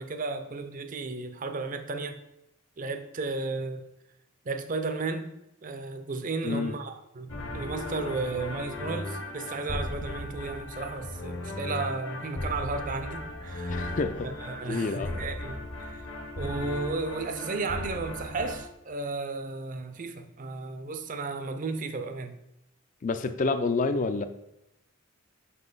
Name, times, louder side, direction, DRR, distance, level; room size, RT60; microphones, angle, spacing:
voice 1, 0.0-2.2 2.8-3.8 4.5-5.3 5.6-16.0 16.3-22.4, right 3 dB, 35° right, 0.5 m, -34 dB
voice 2, 6.4-6.7 13.7-14.3 14.7-15.2 23.0-24.2, left 3 dB, 35° left, 0.4 m, -28 dB
sound 1, 7.3-18.6, left 2 dB, 55° left, 0.9 m, -36 dB
5.7 x 5.6 x 3.9 m
head